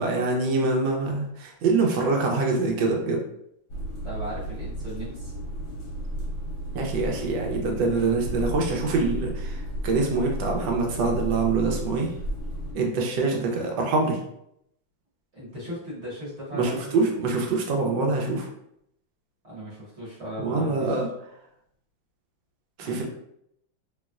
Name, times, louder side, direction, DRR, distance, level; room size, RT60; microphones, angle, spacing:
voice 1, 0.0-3.2 6.7-9.6 9.8-12.1 12.7-14.2 16.5-18.5 20.4-21.1 22.8-23.0, right 3 dB, 70° right, 1 dB, 1.3 m, -25 dB
sound 1, 3.7-12.7, right 1 dB, 50° left, 0.9 m, -33 dB
voice 2, 4.0-5.3 13.3-13.4 15.3-17.1 19.4-21.0 22.8-23.0, equal, 40° right, -8 dB, 1.2 m, -37 dB
3.1 x 3.0 x 2.4 m, 0.75 s
omnidirectional pair, 2.3 m